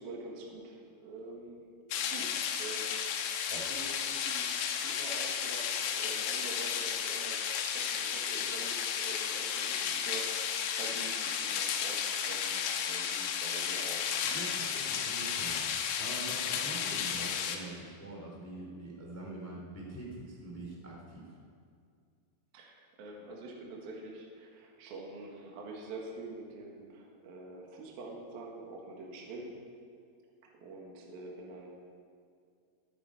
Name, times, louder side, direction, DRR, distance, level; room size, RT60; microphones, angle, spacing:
voice 1, 0.0-1.7 2.1-14.1 22.5-29.6 30.5-31.9, right 2 dB, 60° right, -1 dB, 2.9 m, -46 dB
sound 1, 1.9-17.6, left 8 dB, 80° left, 3.5 m, -33 dB
voice 2, 14.2-21.4, right 2 dB, 15° left, -3 dB, 0.5 m, -44 dB
23.0 x 9.2 x 4.9 m, 2.3 s
omnidirectional pair, 5.9 m